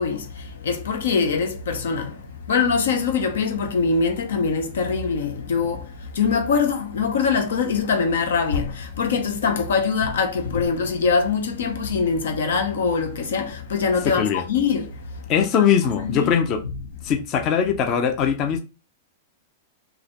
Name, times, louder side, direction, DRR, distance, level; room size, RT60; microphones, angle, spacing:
voice 1, 0.0-2.2 2.5-5.9 6.1-14.9 16.0-16.3, left 5 dB, 75° left, 0.7 m, -23 dB
voice 2, 14.0-14.4 15.3-16.6 17.0-18.6, left 7 dB, 40° left, 0.7 m, -21 dB
3.9 x 2.8 x 3.0 m
hypercardioid pair, 110°, 0 cm